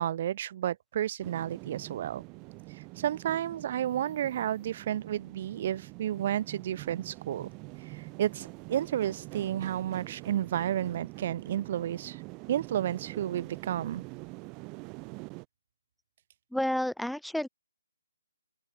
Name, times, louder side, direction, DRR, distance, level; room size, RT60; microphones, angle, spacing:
voice 1, 0.0-2.2 2.7-7.5 7.8-12.2 12.5-14.0, right 11 dB, 35° right, 5.7 m, -32 dB
sound 1, 1.2-15.4, right 30 dB, 20° right, 3.0 m, -45 dB
voice 2, 16.5-17.5, left 1 dB, ahead, 0.8 m, -30 dB
open air
figure-of-eight pair, 140°, 0 cm